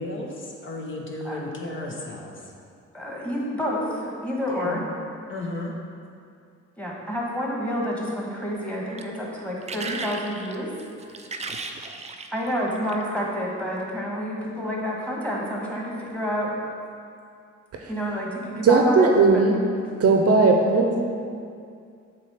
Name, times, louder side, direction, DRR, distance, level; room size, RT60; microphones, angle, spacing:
voice 1, 0.0-2.4 4.5-4.8 5.3-5.7, left 2 dB, 40° left, -1 dB, 1.0 m, -33 dB
voice 2, 2.9-4.8 6.8-10.7 12.3-16.5 17.9-19.4, equal, 5° left, -4 dB, 1.5 m, -29 dB
sound 1, 8.5-13.2 13.9-14.1, right 3 dB, 20° right, 0.5 m, -37 dB
voice 3, 18.6-19.6 20.0-21.0, right 3 dB, 50° right, 2 dB, 0.8 m, -18 dB
7.8 x 3.1 x 5.7 m, 2.4 s
cardioid pair, 90°, 30 cm